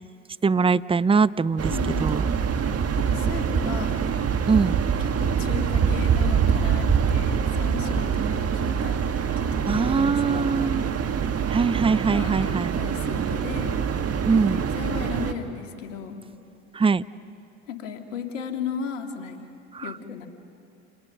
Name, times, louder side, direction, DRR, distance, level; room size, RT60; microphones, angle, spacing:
voice 1, 0.4-1.7 2.0-2.2 4.5-4.8 8.2-8.4 9.7-11.1 11.5-12.7 14.3-14.6 16.7-17.0 19.7-19.9, right 5 dB, 15° right, 17 dB, 0.6 m, -22 dB
sound 1, 1.6-15.3, right 7 dB, 40° right, 1.8 m, -25 dB
voice 2, 1.7-2.0 3.0-4.0 5.0-9.0 9.4-11.0 12.1-13.8 14.5-16.2 17.7-19.4 19.8-20.3, left 7 dB, 90° left, 5 dB, 2.3 m, -35 dB
29.0 x 28.5 x 6.6 m, 2.6 s
hypercardioid pair, 70°, 37 cm